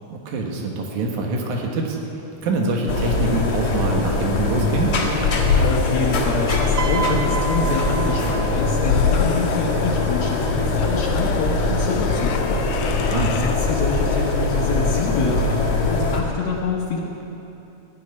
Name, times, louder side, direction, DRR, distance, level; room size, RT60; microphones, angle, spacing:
voice 1, 0.1-2.0 2.4-5.0 12.8-13.4, right 3 dB, 80° right, 0 dB, 2.9 m, -24 dB
sound 1, 2.5-13.6, left 6 dB, 85° left, 2.2 m, -30 dB
sound 2, 2.9-16.2, left 3 dB, 35° left, 2.0 m, -22 dB
voice 2, 5.4-17.0, left 4 dB, 70° left, -2 dB, 2.3 m, -27 dB
Piano, 6.8-9.1 10.2-10.4, right 4 dB, 65° right, 1.1 m, -30 dB
15.5 x 7.9 x 9.5 m, 2.8 s
omnidirectional pair, 3.4 m